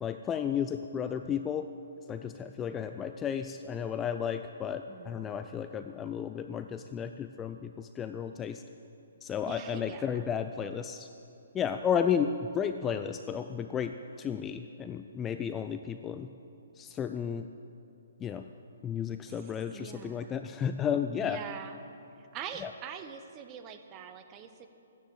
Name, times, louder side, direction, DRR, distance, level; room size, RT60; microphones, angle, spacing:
voice 1, 0.0-1.7 2.1-8.6 9.2-11.1 11.5-16.3 16.8-17.5 18.2-18.4 18.8-21.4 22.6-22.7, left 8 dB, 15° left, 8 dB, 0.3 m, -33 dB
voice 2, 4.9-5.3 9.4-10.3 19.3-20.3 21.2-21.8 22.2-24.7, right 8 dB, 20° right, 8 dB, 0.8 m, -44 dB
14.0 x 10.5 x 7.8 m, 2.8 s
hypercardioid pair, 155°, 0 cm